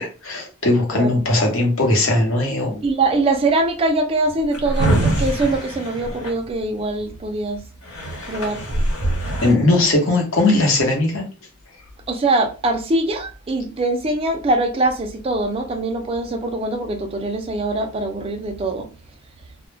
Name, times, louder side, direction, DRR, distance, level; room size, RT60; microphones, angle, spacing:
voice 1, 0.0-2.8 9.4-11.2, left 2 dB, 60° left, 0.8 m, -19 dB
voice 2, 0.9-1.3 2.8-7.6 8.3-8.6 12.1-18.9, right 2 dB, 25° right, 0.3 m, -22 dB
Drawer open or close, 4.3-7.0 7.5-7.6 7.8-9.5, right 1 dB, 90° left, 1.2 m, -23 dB
2.1 x 2.0 x 3.2 m
head